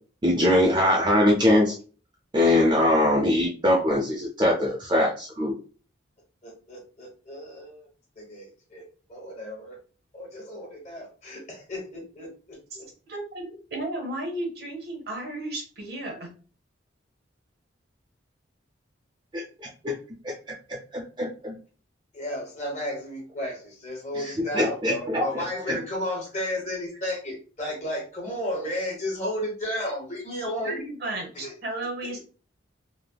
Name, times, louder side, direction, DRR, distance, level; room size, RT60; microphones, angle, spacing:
voice 1, 0.2-1.7 2.3-5.5 19.3-19.4 19.8-19.9 20.7-21.6 24.1-25.8, left 1 dB, 25° right, -3 dB, 0.4 m, -22 dB
voice 2, 6.4-7.9 8.2-9.8 10.1-12.9 22.1-30.8 31.3-31.5 32.0-32.2, left 1 dB, 35° left, -2 dB, 1.1 m, -33 dB
voice 3, 13.1-16.3 30.6-32.2, right 2 dB, 55° right, 0 dB, 0.8 m, -34 dB
3.2 x 2.0 x 2.2 m, 0.38 s
head